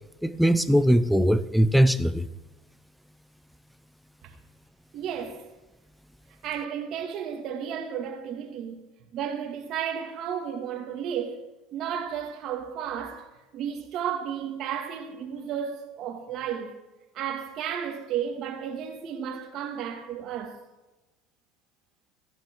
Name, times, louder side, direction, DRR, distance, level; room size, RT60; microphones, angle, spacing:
voice 1, 0.2-2.3, equal, ahead, 0.6 m, -21 dB
voice 2, 4.9-5.5 6.4-8.9 9.1-11.4 11.7-16.8 17.1-20.6, right 8 dB, 50° right, 2.1 m, -33 dB
15.5 x 10.5 x 4.7 m
cardioid pair, 130°, 0 cm